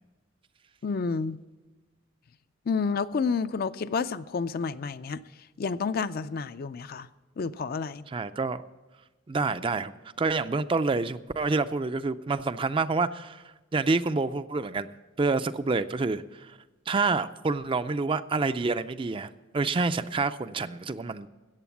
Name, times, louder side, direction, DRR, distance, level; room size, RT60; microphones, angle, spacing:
voice 1, 0.8-1.4 2.7-5.2 5.6-7.1 7.4-8.1, left 5 dB, 50° left, 0.4 m, -30 dB
voice 2, 8.1-8.6 9.3-9.9 10.2-13.4 13.7-14.9 15.2-16.6 16.9-21.3, right 3 dB, 25° right, 0.4 m, -28 dB
14.0 x 8.5 x 7.2 m
head